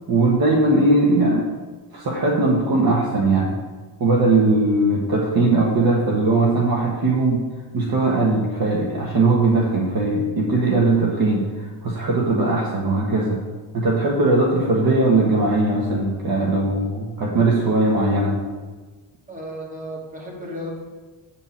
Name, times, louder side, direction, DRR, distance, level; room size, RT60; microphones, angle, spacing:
voice 1, 0.1-1.5 1.9-3.6 4.0-7.4 7.7-13.4 13.7-18.4, right 2 dB, 50° right, -2 dB, 1.5 m, -19 dB
voice 2, 19.3-20.8, equal, 15° right, -3 dB, 2.6 m, -33 dB
9.1 x 4.3 x 7.3 m, 1.4 s
cardioid pair, 135°, 46 cm